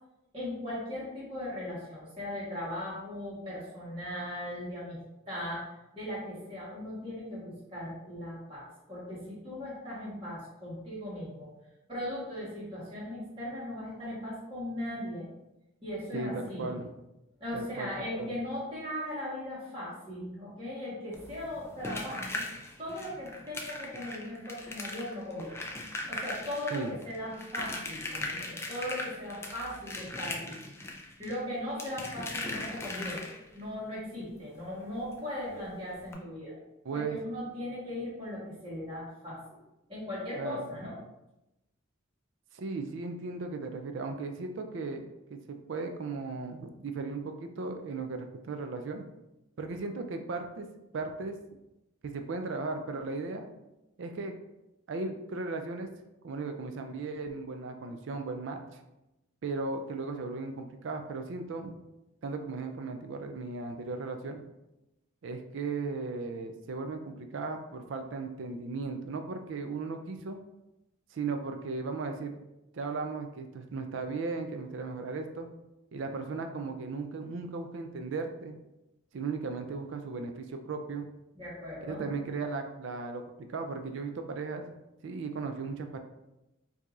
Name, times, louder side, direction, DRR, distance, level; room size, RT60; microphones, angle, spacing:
voice 1, 0.3-5.0 5.3-11.5 11.9-15.3 15.8-16.6 17.4-22.4 22.8-25.6 26.1-30.6 31.2-36.5 36.9-39.4 39.9-41.0 81.3-82.0, left 1 dB, 25° right, -8 dB, 1.3 m, -38 dB
voice 2, 16.1-16.9 17.5-17.9 18.2-18.3 26.7-26.9 36.8-37.2 40.4-40.7 42.5-49.0 49.6-50.7 50.9-51.4 52.0-53.5 54.0-54.4 54.9-55.9 56.2-58.8 59.4-61.8 62.2-64.4 65.2-70.4 71.1-72.4 72.7-75.5 75.9-78.6 79.1-81.1 81.8-84.8 85.0-86.0, right 3 dB, 65° right, 5 dB, 0.4 m, -36 dB
sound 1, 21.1-33.6 35.1-35.2 35.5-35.6 36.0-36.1, left 2 dB, 10° left, 0.3 m, -39 dB
4.5 x 2.7 x 2.4 m, 0.93 s
head